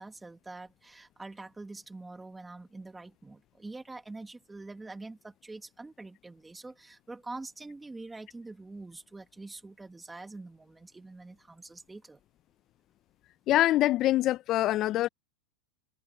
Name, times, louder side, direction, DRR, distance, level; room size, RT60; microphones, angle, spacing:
voice 1, 0.0-12.2, right 3 dB, 10° right, 1.7 m, -45 dB
voice 2, 13.5-15.1, left 14 dB, 40° left, 0.5 m, -24 dB
supercardioid pair, 120°, 0 cm